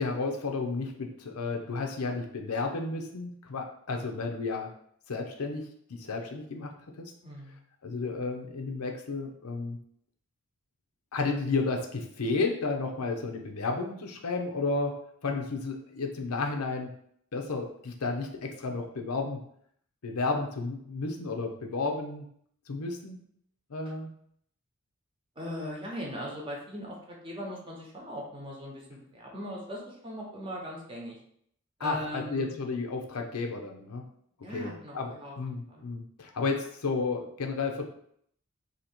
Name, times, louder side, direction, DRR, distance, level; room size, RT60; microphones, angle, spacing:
voice 1, 0.0-4.7 5.1-5.6 5.9-7.1 7.8-9.8 11.1-14.9 15.2-16.9 17.3-19.4 20.0-22.2 22.7-23.2 23.7-24.1 31.8-34.0 34.5-37.8, left 3 dB, 90° left, 3 dB, 0.6 m, -32 dB
voice 2, 7.2-7.6 25.4-26.9 27.2-31.2 31.8-32.5 34.4-35.8, equal, 25° right, -2 dB, 0.8 m, -39 dB
2.8 x 2.8 x 4.3 m, 0.67 s
head